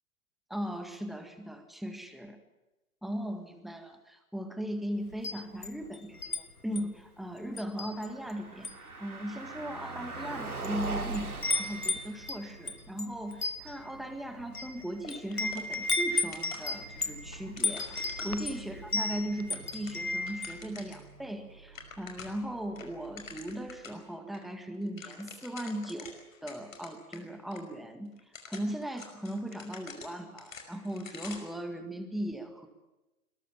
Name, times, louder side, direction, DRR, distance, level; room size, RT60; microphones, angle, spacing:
voice 1, 0.5-2.4 3.0-8.7 9.0-28.1 28.5-32.7, equal, ahead, 7 dB, 1.8 m, -38 dB
Wind chime, 5.1-6.4 6.8-7.0 7.6-8.3 8.6-8.9 9.6-9.7 10.4-10.8 11.1-20.6, left 2 dB, 85° left, 2.4 m, -34 dB
Car passing by, 7.8-23.9, right 3 dB, 80° right, 3.9 m, -44 dB
sound 1, 15.0-16.1 16.3-18.8 19.3-21.1 21.4-21.5 21.7-22.5 22.8-24.0 24.3-24.4 24.7-27.2 27.5-27.6 28.2-31.6, left 5 dB, 65° left, 5.4 m, -47 dB
22.0 x 20.5 x 7.2 m, 1.0 s
figure-of-eight pair, 120°, 43 cm